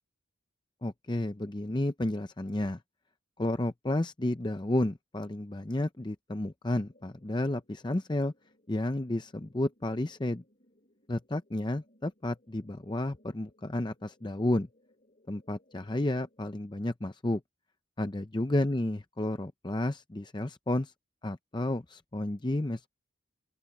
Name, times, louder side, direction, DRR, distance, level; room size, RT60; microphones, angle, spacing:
voice 1, 0.8-2.8 3.4-8.3 8.7-10.4 11.1-14.7 15.3-17.4 18.0-20.9 21.2-22.9, left 1 dB, 25° left, 0.6 m, -31 dB
sound 1, 6.6-16.6, left 1 dB, 40° left, 5.2 m, -67 dB
open air
head